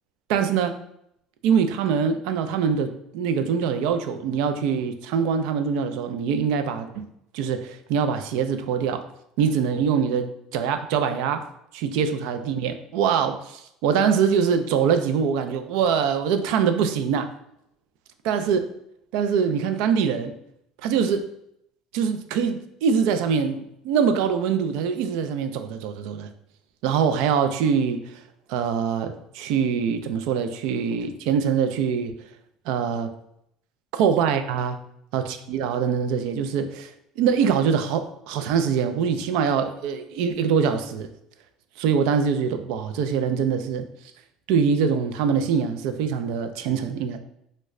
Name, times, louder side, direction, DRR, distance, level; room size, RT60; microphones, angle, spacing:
voice 1, 0.3-0.8 1.4-6.9 7.3-9.1 9.4-11.5 11.7-17.3 18.2-18.6 19.1-20.3 20.8-21.3 21.9-26.3 26.8-28.2 28.5-32.2 32.7-33.1 33.9-34.8 35.1-41.1 41.8-43.9 44.5-47.2, right 6 dB, 75° right, 9 dB, 0.3 m, -23 dB
3.1 x 2.1 x 3.5 m, 0.76 s
cardioid pair, 155°, 0 cm